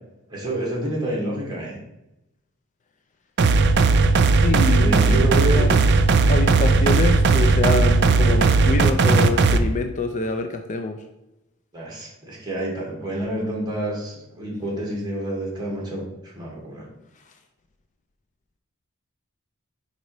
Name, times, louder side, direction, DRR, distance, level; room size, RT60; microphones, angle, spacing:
voice 1, 0.3-1.8 4.8-5.9 6.9-7.0 11.7-16.9, right 1 dB, 20° right, -3 dB, 2.0 m, -28 dB
sound 1, 3.4-9.6, right 3 dB, 55° right, 0.4 m, -17 dB
voice 2, 4.4-5.8 6.3-11.0, left 3 dB, 35° left, 6 dB, 0.4 m, -26 dB
5.2 x 4.0 x 4.7 m, 0.89 s
head